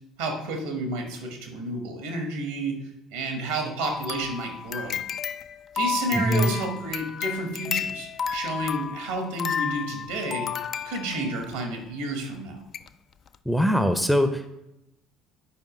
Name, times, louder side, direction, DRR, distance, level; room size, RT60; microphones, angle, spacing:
voice 1, 0.2-2.8 3.1-5.0 5.7-10.5 10.8-12.6, right 2 dB, 70° right, 3 dB, 1.6 m, -31 dB
sound 1, 3.8-11.6 12.2-12.3 12.7-12.9 13.3-13.4, left 7 dB, 40° left, 0.3 m, -32 dB
voice 2, 6.1-6.5 13.5-14.5, equal, ahead, 8 dB, 0.6 m, -22 dB
9.5 x 5.0 x 3.2 m, 0.88 s
figure-of-eight pair, 55°, 0 cm